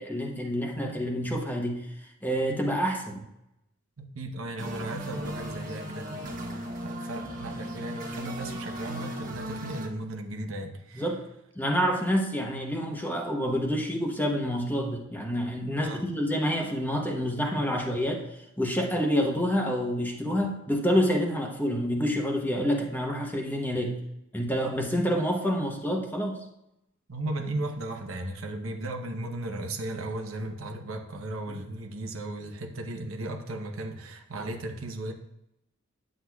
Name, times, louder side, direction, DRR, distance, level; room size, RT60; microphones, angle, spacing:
voice 1, 0.0-1.8 2.2-3.2 10.9-11.2 11.6-18.2 18.6-24.0 24.3-26.4 31.5-31.6, equal, 10° left, 1 dB, 1.0 m, -28 dB
voice 2, 4.0-11.1 15.7-16.0 27.1-35.1, right 2 dB, 80° right, 3 dB, 0.9 m, -36 dB
sound 1, 4.6-9.9, equal, 45° right, 1.2 m, -37 dB
9.7 x 7.8 x 2.3 m, 0.84 s
head